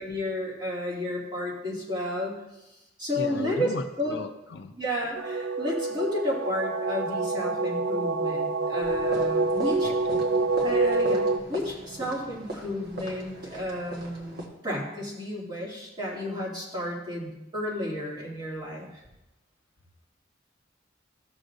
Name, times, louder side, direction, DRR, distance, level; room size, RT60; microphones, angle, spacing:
voice 1, 0.0-2.4 3.0-4.1 4.7-9.9 10.3-19.0, left 1 dB, 25° right, -6 dB, 2.5 m, -32 dB
voice 2, 3.1-4.7 9.8-10.3, left 3 dB, 60° left, 8 dB, 0.5 m, -36 dB
sound 1, 5.2-11.4, right 3 dB, 80° right, 0.4 m, -26 dB
sound 2, 8.8-14.5, right 2 dB, 55° right, 1.5 m, -40 dB
15.0 x 6.3 x 2.6 m, 0.96 s
head